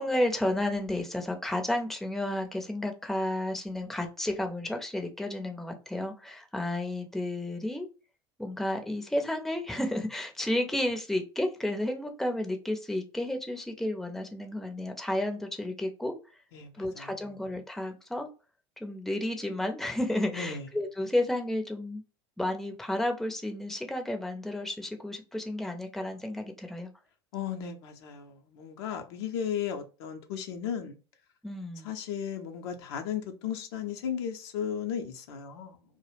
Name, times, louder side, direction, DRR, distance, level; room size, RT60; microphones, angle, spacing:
voice 1, 0.0-7.9 8.4-16.1 16.8-18.3 18.8-22.0 22.4-26.9 31.4-31.9, left 1 dB, ahead, 0.5 m, -32 dB
voice 2, 16.5-17.1 20.3-20.7 27.3-31.0 31.8-35.8, left 8 dB, 65° left, 0.5 m, -35 dB
2.2 x 2.0 x 3.2 m
hypercardioid pair, 80°, 14 cm